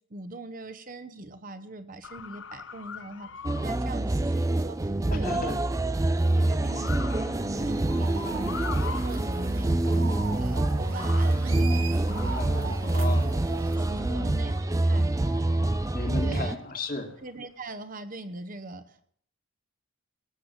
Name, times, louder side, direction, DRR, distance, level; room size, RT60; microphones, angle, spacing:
voice 1, 0.1-3.3 3.6-5.6 6.2-8.6 8.9-12.7 13.8-15.1 16.2-16.6 17.2-19.0, right 2 dB, 40° right, 10 dB, 0.9 m, -41 dB
Motor vehicle (road) / Siren, 2.0-17.6, left 6 dB, 60° left, 0.8 m, -45 dB
sound 1, 3.4-16.6, right 2 dB, 15° right, 0.4 m, -26 dB
voice 2, 5.1-5.6 12.2-13.4 14.0-14.4 15.9-17.2, left 3 dB, 45° left, 4 dB, 1.8 m, -36 dB
sound 2, 7.5-13.8, right 2 dB, 80° right, 1.9 m, -38 dB
18.5 x 6.7 x 7.4 m, 0.63 s
head